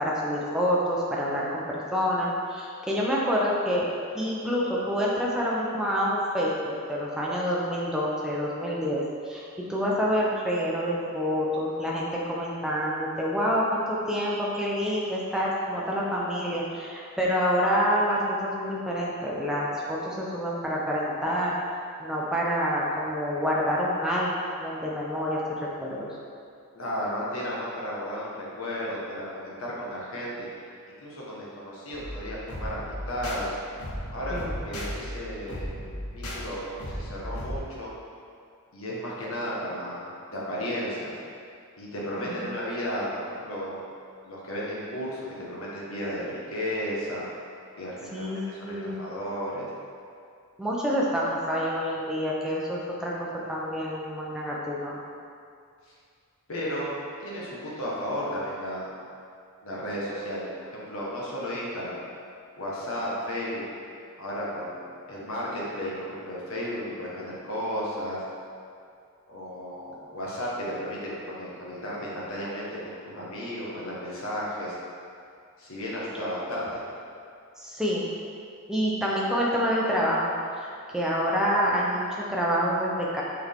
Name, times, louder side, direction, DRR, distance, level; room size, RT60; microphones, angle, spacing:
voice 1, 0.0-3.9 4.1-6.5 6.9-21.5 22.0-24.3 24.6-25.4 25.8-26.1 34.3-34.6 42.2-42.5 48.1-49.0 50.6-53.1 53.5-55.0 77.6-78.1 78.7-80.7 80.9-83.2, equal, 5° right, -5 dB, 0.8 m, -27 dB
voice 2, 26.7-30.5 31.0-33.5 34.1-35.7 36.1-37.9 38.7-41.1 41.8-43.8 44.2-47.2 47.8-49.6 56.5-56.9 57.2-58.9 59.6-62.0 62.6-63.6 64.2-68.2 69.3-74.8 75.6-76.8, equal, 65° left, -6 dB, 1.4 m, -34 dB
sound 1, 31.9-37.6, equal, 90° left, 1.1 m, -36 dB
6.1 x 4.6 x 3.6 m, 2.4 s
head